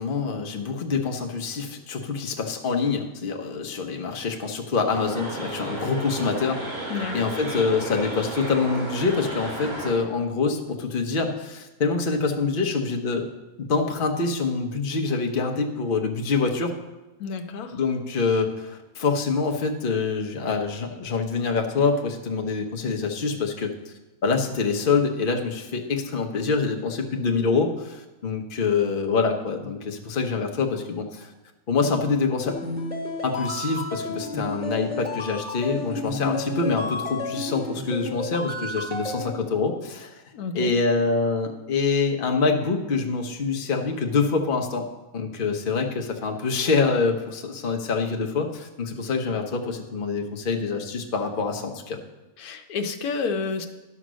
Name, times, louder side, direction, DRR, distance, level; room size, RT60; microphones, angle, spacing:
voice 1, 0.0-6.6 7.1-13.3 13.7-16.7 17.7-23.7 24.2-31.3 31.7-32.6 33.2-40.1 40.5-44.9 45.1-52.0, left 4 dB, 40° left, 3 dB, 1.0 m, -25 dB
sound 1, 4.8-9.9, right 2 dB, 90° right, 4.5 m, -33 dB
voice 2, 17.2-17.8 40.3-40.7 52.4-53.7, left 5 dB, 90° left, 6 dB, 1.3 m, -30 dB
sound 2, 32.5-39.3, left 1 dB, 5° right, 1.4 m, -32 dB
11.0 x 5.8 x 6.2 m, 1.1 s
omnidirectional pair, 1.5 m